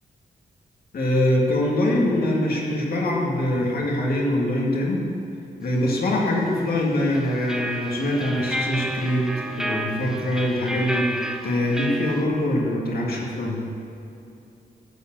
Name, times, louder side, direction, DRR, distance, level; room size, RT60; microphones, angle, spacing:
voice 1, 0.9-5.0 5.6-13.7, left 1 dB, 65° left, -3 dB, 2.2 m, -23 dB
sound 1, 7.1-12.2, equal, 5° right, 0.6 m, -31 dB
14.0 x 4.9 x 7.8 m, 2.7 s
wide cardioid pair, 160°, 17 cm